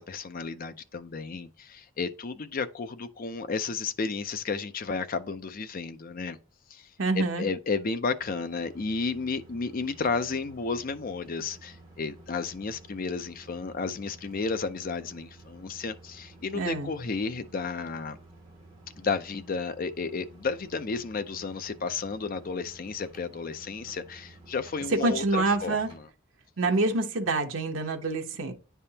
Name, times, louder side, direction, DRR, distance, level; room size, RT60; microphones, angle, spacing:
voice 1, 0.0-6.4 6.7-18.2 19.0-26.1, left 4 dB, 45° left, 0.5 m, -32 dB
voice 2, 7.0-7.5 16.5-16.9 25.0-25.9 26.6-28.5, right 3 dB, 75° right, 0.9 m, -26 dB
sound 1, 8.2-26.0, right 2 dB, 20° right, 2.1 m, -52 dB
9.7 x 3.5 x 2.8 m
head